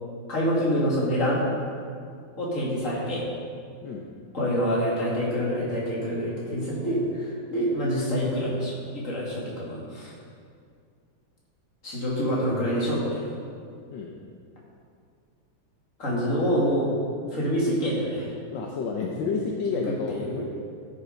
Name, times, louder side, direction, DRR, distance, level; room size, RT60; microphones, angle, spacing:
voice 1, 0.3-1.4 2.4-3.2 4.3-10.1 11.8-13.2 16.0-16.9 17.3-18.3 19.9-20.3, equal, 40° left, -5 dB, 2.7 m, -26 dB
voice 2, 18.5-20.5, left 5 dB, 75° left, 0 dB, 1.6 m, -30 dB
13.0 x 6.9 x 5.1 m, 2.3 s
omnidirectional pair, 2.2 m